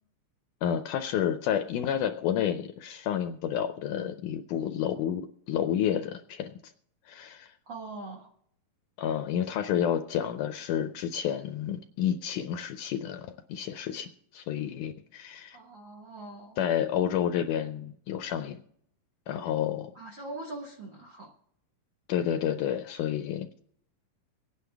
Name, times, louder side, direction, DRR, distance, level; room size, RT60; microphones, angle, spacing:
voice 1, 0.6-6.5 7.1-7.5 9.0-15.6 16.6-18.6 19.3-19.9 22.1-23.5, left 9 dB, 80° left, 8 dB, 1.9 m, -30 dB
voice 2, 7.7-8.3 15.5-16.7 19.9-21.3, right 2 dB, 55° right, 1 dB, 1.3 m, -42 dB
24.5 x 9.6 x 3.4 m, 0.68 s
omnidirectional pair, 4.1 m